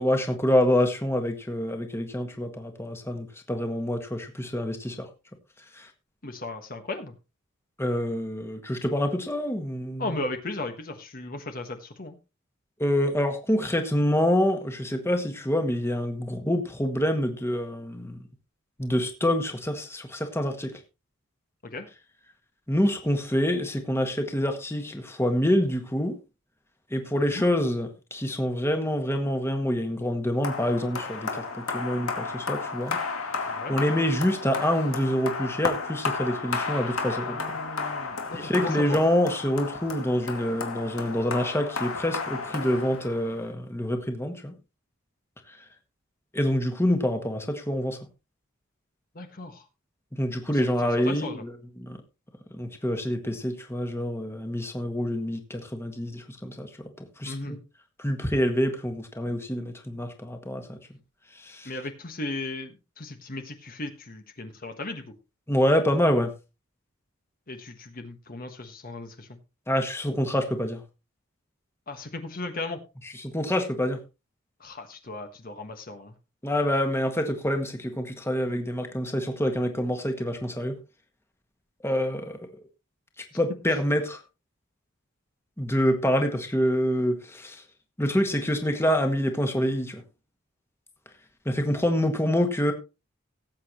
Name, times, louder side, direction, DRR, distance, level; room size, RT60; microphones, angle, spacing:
voice 1, 0.0-5.1 5.7-5.9 7.8-10.1 12.8-18.2 18.8-20.8 22.7-26.2 26.9-33.0 33.7-37.4 38.3-44.5 46.3-48.0 50.1-52.0 52.5-56.7 57.2-57.6 58.0-60.8 61.4-61.7 65.5-66.3 69.7-70.8 73.2-74.0 76.4-80.8 81.8-82.4 83.3-84.2 85.6-87.6 88.0-90.0 91.4-92.7, equal, 10° left, 5 dB, 1.6 m, -26 dB
voice 2, 6.2-7.1 10.0-12.1 21.7-21.9 27.3-27.4 33.5-33.7 37.2-39.0 49.1-49.6 50.5-50.6 51.0-51.4 57.2-57.6 61.6-65.0 67.5-69.3 71.9-72.8 74.6-76.1, left 2 dB, 45° left, 6 dB, 1.4 m, -36 dB
sound 1, 30.4-43.5, left 4 dB, 85° left, 2.4 m, -33 dB
18.0 x 8.3 x 3.0 m, 0.28 s
head